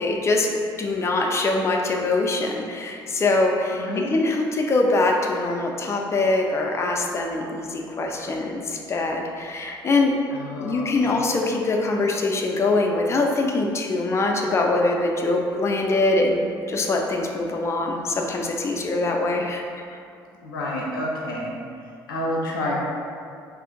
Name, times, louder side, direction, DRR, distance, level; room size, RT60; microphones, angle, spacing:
voice 1, 0.0-10.2 10.6-16.4 16.7-19.6 19.9-20.0, left 2 dB, 25° left, 1 dB, 0.4 m, -23 dB
voice 2, 3.7-4.2 10.3-11.3 20.4-21.6 22.1-22.7, left 1 dB, 80° left, -4 dB, 0.5 m, -29 dB
2.6 x 2.4 x 3.7 m, 2.3 s
figure-of-eight pair, 50°, 11 cm